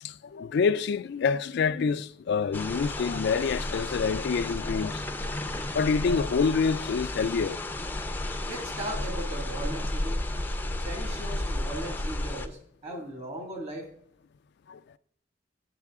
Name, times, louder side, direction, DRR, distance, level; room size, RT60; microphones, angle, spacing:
voice 1, 0.0-5.4 5.7-7.6 12.9-13.0 14.7-14.8, left 5 dB, 65° left, 0.3 m, -27 dB
sound 1, 2.5-12.5, left 1 dB, 10° left, 0.5 m, -33 dB
voice 2, 8.4-10.3 10.8-13.9, right 1 dB, 35° right, 2.0 m, -38 dB
9.9 x 7.4 x 3.5 m
head